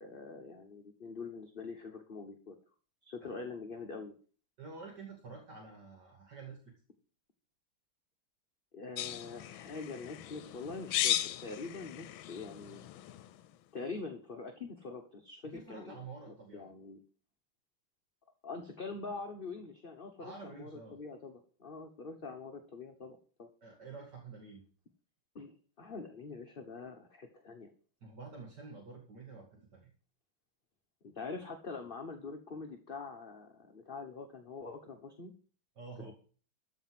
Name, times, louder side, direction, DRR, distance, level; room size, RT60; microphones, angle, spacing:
voice 1, 0.0-2.5 3.0-4.1 8.7-12.9 13.7-16.0 16.3-17.0 18.4-23.5 25.3-27.7 31.0-35.3 36.0-36.1, left 4 dB, 30° left, 5 dB, 1.2 m, -44 dB
voice 2, 4.6-6.7 15.4-16.7 20.2-21.0 23.6-24.7 28.0-29.9 35.8-36.1, right 4 dB, 55° right, 0 dB, 2.6 m, -49 dB
sound 1, 9.0-13.5, left 13 dB, 80° left, 1.5 m, -37 dB
14.0 x 5.5 x 7.6 m, 0.40 s
omnidirectional pair, 2.2 m